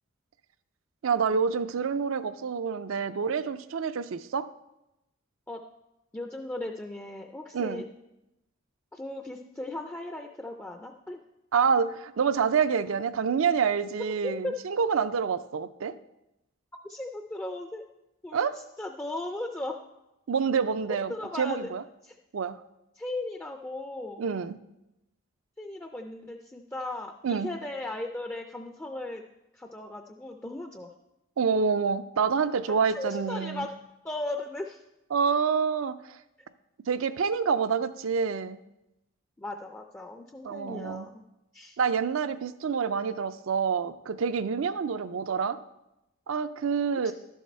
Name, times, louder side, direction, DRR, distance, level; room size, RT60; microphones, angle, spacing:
voice 1, 1.0-4.5 7.5-7.8 11.5-15.9 18.3-18.6 20.3-21.8 22.3-22.6 24.2-24.6 27.2-27.5 31.4-33.7 35.1-35.9 36.9-38.6 40.4-41.1 41.8-45.6 46.3-47.1, right 6 dB, 70° right, 13 dB, 0.4 m, -27 dB
voice 2, 6.1-7.8 8.9-11.2 14.2-14.5 16.8-17.8 18.2-19.8 21.1-21.7 22.0-22.1 23.0-24.3 25.6-29.2 29.5-30.9 32.9-33.7 34.0-34.8 39.4-41.2 41.5-41.8 47.0-47.1, left 2 dB, 10° left, 4 dB, 0.4 m, -37 dB
12.0 x 7.2 x 4.3 m, 0.94 s
head